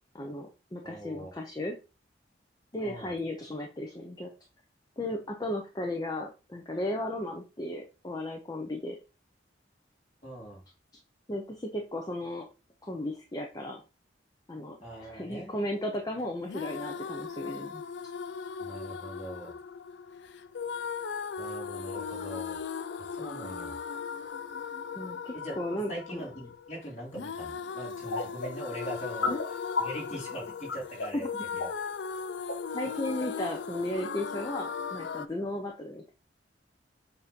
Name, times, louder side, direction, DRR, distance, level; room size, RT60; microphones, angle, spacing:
voice 1, 0.1-1.7 2.7-4.3 5.0-9.0 11.3-12.5 12.9-13.8 14.5-17.8 25.0-26.2 29.3-29.4 32.7-36.1, left 1 dB, 20° left, 2 dB, 0.7 m, -35 dB
voice 2, 0.8-1.3 2.8-3.1 10.2-10.6 14.8-15.5 18.6-19.5 21.4-22.6 23.0-23.7 25.3-29.3 29.8-31.3 31.5-31.7, right 1 dB, 40° left, -2 dB, 2.8 m, -41 dB
sound 1, 16.4-35.3, left 6 dB, 70° left, 0.4 m, -38 dB
sound 2, 28.1-28.5 28.7-28.8 29.2-29.4 29.8-30.2 30.7-31.1 31.4-32.0 32.3-32.6 33.2-33.3 33.7-33.8, left 4 dB, 90° left, 1.2 m, -30 dB
7.1 x 2.8 x 5.2 m, 0.31 s
head